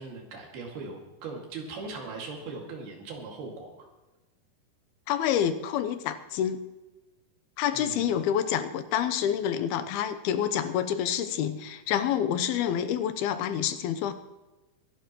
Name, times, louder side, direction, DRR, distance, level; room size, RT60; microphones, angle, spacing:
voice 1, 0.0-3.9 7.7-8.1, right 3 dB, 75° right, 0 dB, 4.1 m, -39 dB
voice 2, 5.1-6.6 7.6-14.1, left 9 dB, 85° left, 10 dB, 2.7 m, -28 dB
23.5 x 11.5 x 3.0 m, 1.1 s
omnidirectional pair, 4.5 m